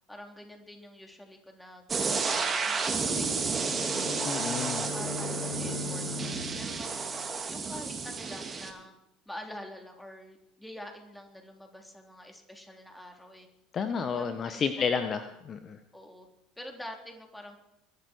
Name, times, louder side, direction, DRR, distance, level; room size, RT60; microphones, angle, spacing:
voice 1, 0.1-4.4 4.9-7.1 7.5-8.9 9.3-13.5 13.9-14.6 15.0-15.1 15.9-16.3 16.6-17.6, left 1 dB, 5° left, 2 dB, 3.8 m, -46 dB
sound 1, 1.9-8.7, right 4 dB, 25° right, 2.7 m, -31 dB
sound 2, 2.9-7.6, left 7 dB, 70° left, 5.5 m, -41 dB
voice 2, 4.2-4.9 13.7-15.2 15.5-15.8, left 6 dB, 35° left, 9 dB, 1.2 m, -30 dB
22.5 x 12.0 x 4.7 m, 0.85 s
figure-of-eight pair, 70°, 0 cm